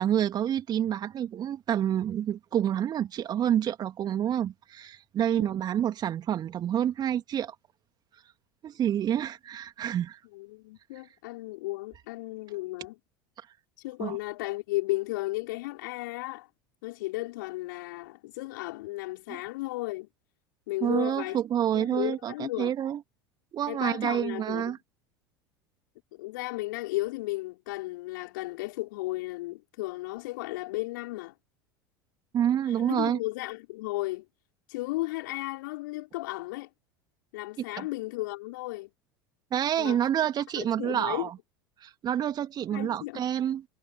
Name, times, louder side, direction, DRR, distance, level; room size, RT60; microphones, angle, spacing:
voice 1, 0.0-7.6 8.6-10.2 14.0-14.2 19.3-19.4 20.8-23.0 23.5-24.8 32.3-33.2 37.8-37.9 39.5-41.3 41.8-43.6, right 10 dB, 35° right, 2.4 m, -28 dB
voice 2, 10.3-13.0 13.8-16.5 16.8-20.1 20.7-21.4 21.7-22.7 23.7-24.7 26.1-31.3 32.7-34.2 34.7-36.7 37.3-38.9 39.8-40.0 40.5-41.3 42.7-43.2, left 20 dB, 60° left, 5.7 m, -34 dB
figure-of-eight pair, 75°, 12 cm